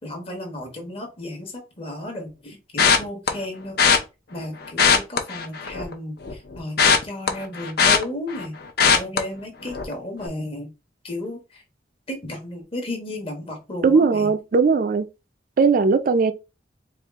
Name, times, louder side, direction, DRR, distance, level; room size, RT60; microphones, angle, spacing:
voice 1, 0.0-3.8 4.3-8.6 8.9-10.7 11.0-11.6 12.1-14.3, left 1 dB, 30° left, 1.2 m, -34 dB
sound 1, 2.8-3.3 3.8-4.0 4.7-5.9 6.2-8.5 8.8-9.2 9.7-9.9 10.2-10.3, left 6 dB, 60° left, 0.7 m, -18 dB
voice 2, 13.8-15.1 15.6-16.3, right 4 dB, 50° right, 0.4 m, -18 dB
4.4 x 2.4 x 3.5 m
head